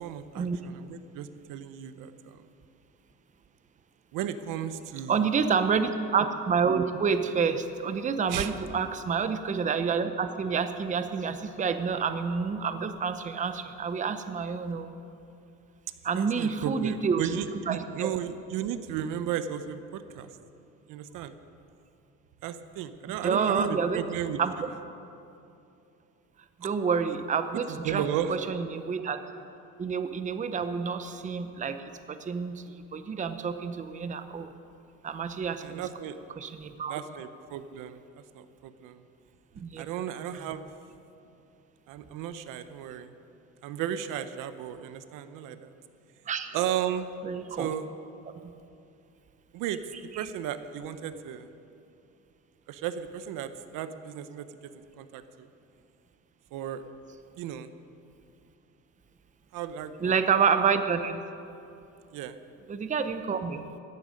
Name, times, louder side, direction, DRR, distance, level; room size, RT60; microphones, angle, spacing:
voice 1, 0.0-2.4 4.1-5.2 8.3-8.5 16.2-20.3 20.9-21.3 22.4-24.4 26.6-26.7 27.5-28.4 35.6-36.2 36.9-38.0 38.3-39.0 39.8-40.6 41.9-43.1 43.6-45.7 46.5-47.1 47.5-47.9 49.5-49.8 50.1-51.5 52.7-54.7 55.0-55.5 56.5-56.8 57.4-57.7 59.5-60.2 62.1-62.4, right 10 dB, 75° right, 11 dB, 0.9 m, -34 dB
voice 2, 5.1-14.9 16.0-17.3 17.7-18.1 23.2-24.0 24.4-24.7 26.6-28.0 28.3-29.2 29.8-31.8 32.1-34.5 35.0-35.8 36.4-37.0 39.6-39.8 46.3-46.5 47.2-47.7 48.3-48.4 60.0-61.2 62.7-63.6, right 6 dB, 25° right, 9 dB, 0.7 m, -28 dB
16.5 x 14.0 x 5.2 m, 2.7 s
cardioid pair, 130°, 33 cm